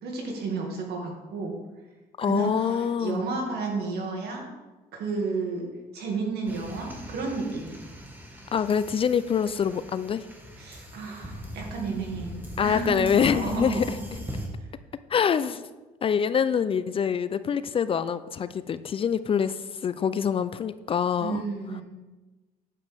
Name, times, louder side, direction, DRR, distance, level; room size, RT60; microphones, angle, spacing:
voice 1, 0.0-1.6 2.2-4.5 4.9-7.8 10.6-14.0 14.6-14.7 21.2-21.8, right 4 dB, 75° right, 0 dB, 2.2 m, -32 dB
voice 2, 2.2-3.2 8.5-10.2 12.6-13.9 15.1-15.6 16.0-21.4, left 7 dB, 35° left, 14 dB, 0.3 m, -25 dB
sound 1, 6.5-14.5, equal, 10° right, 1.5 m, -40 dB
9.2 x 7.1 x 3.5 m, 1.2 s
cardioid pair, 110°, 17 cm